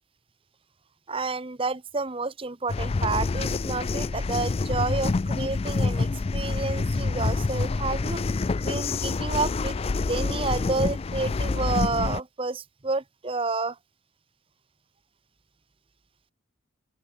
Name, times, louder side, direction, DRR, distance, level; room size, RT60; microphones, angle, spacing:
voice 1, 1.1-8.2 8.6-9.8 10.1-13.8, right 3 dB, 25° right, 0.9 m, -30 dB
sound 1, 2.7-12.2, left 3 dB, 30° left, 0.3 m, -27 dB
open air
head